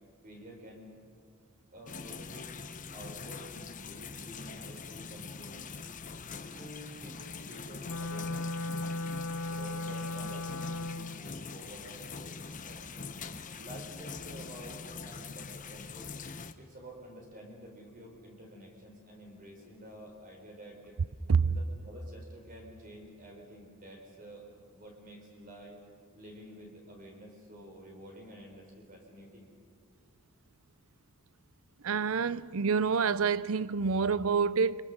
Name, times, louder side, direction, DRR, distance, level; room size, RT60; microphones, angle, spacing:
voice 1, 0.2-1.0 1.7-2.6 2.9-5.8 6.3-9.2 9.5-13.1 13.5-16.1 16.6-21.0 21.4-25.8 26.1-29.5, equal, 40° right, 4.5 m, -50 dB
sound 1, 1.9-16.5, left 5 dB, 35° left, 0.9 m, -43 dB
Wind instrument woodwind instrument, 7.8-11.2, left 2 dB, 90° left, 0.7 m, -36 dB
voice 2, 31.8-34.8, right 5 dB, 80° right, 0.6 m, -27 dB
29.5 x 24.0 x 6.7 m
head